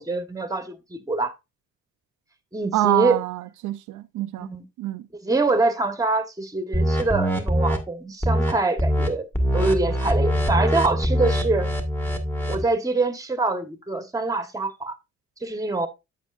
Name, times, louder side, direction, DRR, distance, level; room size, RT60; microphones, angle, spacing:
voice 1, 0.0-1.3 2.5-3.2 4.4-4.7 5.2-9.2 9.5-11.7 12.5-15.0 15.4-15.9, right 3 dB, 10° right, 1.2 m, -24 dB
voice 2, 2.7-4.5 4.8-5.0, right 14 dB, 80° right, 0.6 m, -25 dB
sound 1, 6.7-7.8 8.2-8.5 8.8-9.1 9.3-12.6, equal, 5° left, 1.6 m, -23 dB
8.2 x 8.1 x 2.5 m
cardioid pair, 90°, 30 cm